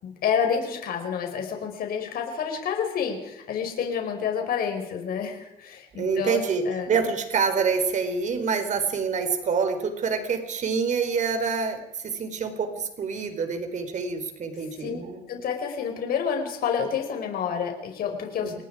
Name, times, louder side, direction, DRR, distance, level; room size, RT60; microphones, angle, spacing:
voice 1, 0.0-6.9 14.8-15.0 15.3-18.6, left 7 dB, 60° left, 3 dB, 5.3 m, -29 dB
voice 2, 6.0-15.2 18.4-18.6, right 5 dB, 45° right, 7 dB, 4.2 m, -27 dB
28.0 x 19.5 x 5.0 m, 0.95 s
cardioid pair, 110°, 17 cm